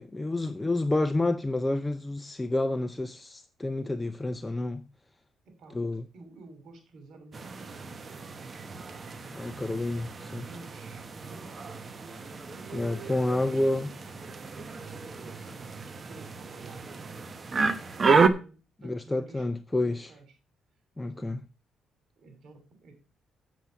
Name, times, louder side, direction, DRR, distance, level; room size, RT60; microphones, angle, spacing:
voice 1, 0.0-4.8 5.7-6.0 9.3-10.5 12.7-13.9 18.8-20.1 21.0-21.4, left 2 dB, 15° left, 0.5 m, -29 dB
voice 2, 5.5-5.8 6.1-9.9 10.5-12.8 13.2-13.9 14.7-19.5 19.8-20.4 21.0-21.3 22.2-22.9, right 3 dB, 65° right, 3.0 m, -52 dB
sound 1, 7.3-18.3, right 4 dB, 35° right, 1.0 m, -31 dB
8.1 x 7.3 x 5.7 m
cardioid pair, 90°, 0 cm